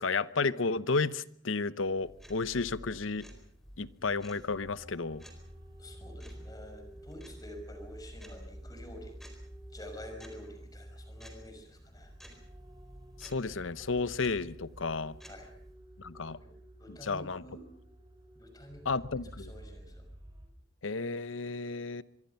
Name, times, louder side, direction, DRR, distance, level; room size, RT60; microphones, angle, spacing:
voice 1, 0.0-3.2 3.8-5.2 13.2-15.2 16.0-16.4 16.9-17.4 18.8-19.5 20.8-22.0, left 4 dB, 85° left, 0.9 m, -32 dB
sound 1, 2.0-15.8, equal, ahead, 4.4 m, -54 dB
sound 2, 3.9-20.5, right 1 dB, 25° right, 4.7 m, -50 dB
voice 2, 5.8-9.1 9.7-12.1 15.3-15.5 16.3-16.5 16.8-17.6 18.4-19.0 19.4-20.0, left 1 dB, 20° left, 5.8 m, -49 dB
25.0 x 23.0 x 5.7 m
head